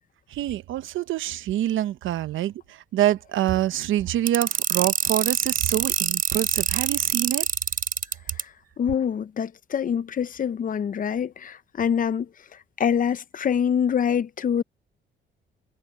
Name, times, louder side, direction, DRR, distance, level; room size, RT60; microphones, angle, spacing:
voice 1, 0.3-7.5, right 12 dB, 80° right, 1.0 m, -26 dB
sound 1, 4.3-8.4, right 6 dB, 45° right, 3.4 m, -24 dB
voice 2, 8.4-12.3 12.8-14.6, left 8 dB, 45° left, 0.6 m, -25 dB
cardioid pair, 90°, 20 cm